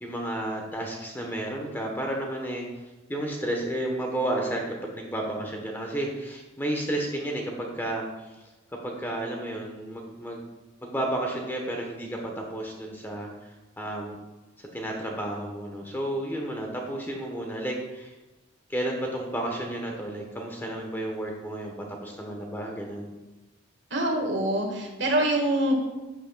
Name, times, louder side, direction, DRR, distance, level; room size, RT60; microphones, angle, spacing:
voice 1, 0.0-2.7 3.1-8.0 8.8-10.4 10.8-14.2 14.6-18.1 18.7-23.1, right 1 dB, 10° left, 1 dB, 1.0 m, -32 dB
voice 2, 23.9-25.7, right 1 dB, 65° right, 2 dB, 1.6 m, -25 dB
10.5 x 8.1 x 2.3 m, 1.1 s
head